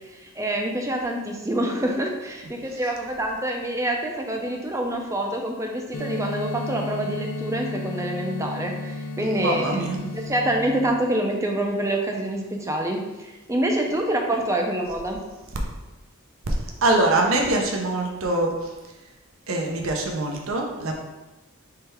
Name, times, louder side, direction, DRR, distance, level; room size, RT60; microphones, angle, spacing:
voice 1, 0.1-9.8 10.1-15.2, right 1 dB, 15° right, 1 dB, 0.5 m, -26 dB
sound 1, 5.9-10.9, left 2 dB, 65° left, 0.4 m, -33 dB
voice 2, 9.2-10.1 16.8-18.5 19.5-20.9, right 2 dB, 70° right, 1 dB, 0.6 m, -23 dB
3.7 x 3.3 x 4.3 m, 1.1 s
head